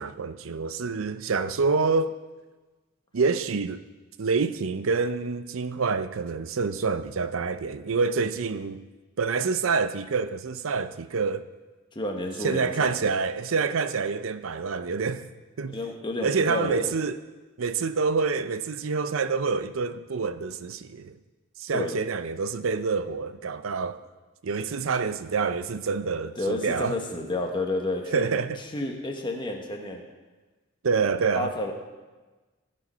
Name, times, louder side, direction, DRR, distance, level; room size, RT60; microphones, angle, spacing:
voice 1, 0.0-2.1 3.1-3.8 4.2-8.9 9.2-11.5 12.4-15.3 15.6-15.8 16.2-17.2 17.6-21.2 21.6-24.0 24.4-27.0 28.1-28.6 30.8-31.5, right 4 dB, 75° right, 0.6 m, -27 dB
voice 2, 11.9-12.9 15.7-16.9 21.7-21.9 26.4-28.3 28.7-30.0 31.3-31.7, left 2 dB, 25° left, 1.3 m, -30 dB
15.5 x 5.3 x 5.5 m
head